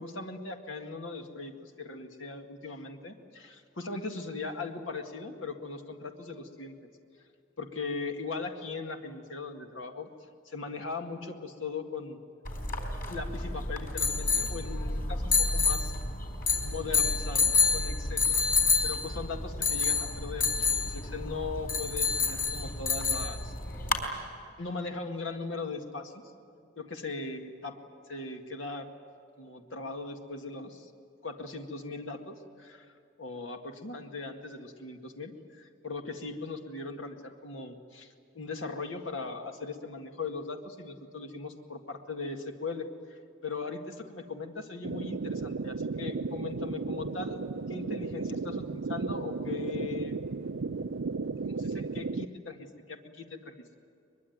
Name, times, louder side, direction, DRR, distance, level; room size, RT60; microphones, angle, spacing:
voice 1, 0.0-6.7 7.6-10.1 10.5-12.2 13.1-15.9 16.6-18.3 18.8-20.5 20.8-23.5 24.6-26.1 26.8-27.8 28.1-28.9 29.4-30.9 31.2-32.9 33.2-47.4 47.7-50.2 51.4-53.5, left 3 dB, 85° left, 4 dB, 2.0 m, -39 dB
sound 1, 12.5-24.0, left 4 dB, 50° left, 4.2 m, -28 dB
sound 2, 44.8-52.2, right 4 dB, 90° right, 0.6 m, -34 dB
22.5 x 22.5 x 9.4 m, 2.5 s
head